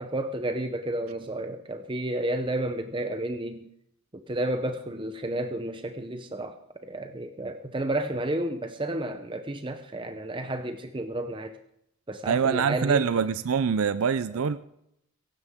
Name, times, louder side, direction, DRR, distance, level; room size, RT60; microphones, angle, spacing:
voice 1, 0.0-3.7 4.1-6.6 6.8-11.6 12.1-13.1 14.3-14.4, right 1 dB, 20° right, 0.7 m, -31 dB
voice 2, 12.3-14.6, right 6 dB, 70° right, 0.5 m, -24 dB
16.5 x 16.0 x 3.6 m
head